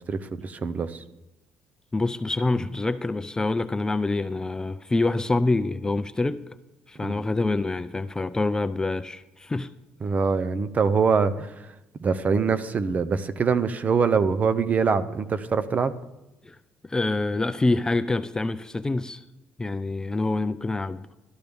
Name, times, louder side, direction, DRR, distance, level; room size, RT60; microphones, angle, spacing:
voice 1, 0.1-1.0 7.0-7.2 10.0-11.7 12.0-15.9, right 5 dB, 35° right, 0.6 m, -24 dB
voice 2, 1.9-6.4 6.9-9.7 16.4-16.6 16.8-19.2 19.6-21.1, left 2 dB, 15° left, 0.4 m, -26 dB
13.0 x 12.0 x 3.5 m
cardioid pair, 95°, 4 cm